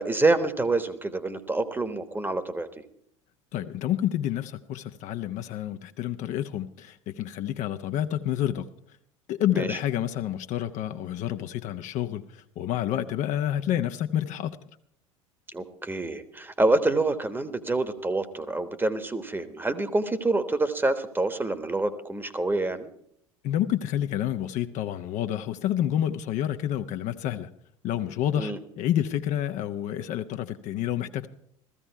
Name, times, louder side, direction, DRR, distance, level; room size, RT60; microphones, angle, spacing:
voice 1, 0.0-2.8 9.5-9.8 15.5-22.9 28.4-28.6, right 2 dB, 10° right, 1.2 m, -27 dB
voice 2, 3.5-8.7 9.3-14.6 23.4-27.5 27.8-31.3, left 11 dB, 45° left, 0.7 m, -29 dB
15.0 x 14.5 x 4.6 m
figure-of-eight pair, 70°, 17 cm